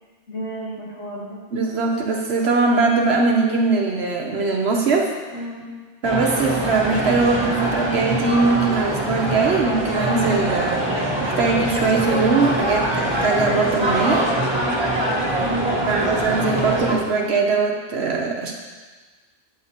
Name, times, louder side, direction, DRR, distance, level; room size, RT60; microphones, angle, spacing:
voice 1, 0.3-1.4 5.3-5.8 15.2-16.1, equal, 90° left, -6 dB, 2.5 m, -32 dB
voice 2, 1.5-5.1 6.0-14.3 15.9-18.5, right 4 dB, 70° right, -1 dB, 1.1 m, -21 dB
sound 1, 6.0-17.0, right 1 dB, 25° right, 1.4 m, -23 dB
9.6 x 6.3 x 4.2 m, 1.4 s
omnidirectional pair, 1.1 m